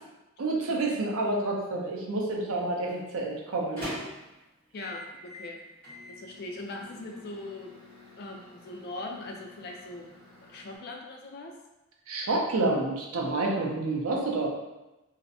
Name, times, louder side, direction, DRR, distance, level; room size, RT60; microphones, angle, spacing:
voice 1, 0.4-3.9 12.1-14.5, right 2 dB, 75° right, 0 dB, 0.5 m, -29 dB
Microwave oven, 2.6-10.8, left 1 dB, 40° right, 1.4 m, -45 dB
voice 2, 4.7-5.6 6.1-7.8 8.2-10.1 10.4-11.5, left 2 dB, 45° left, 1 dB, 0.3 m, -40 dB
2.5 x 2.0 x 2.6 m, 1.0 s
head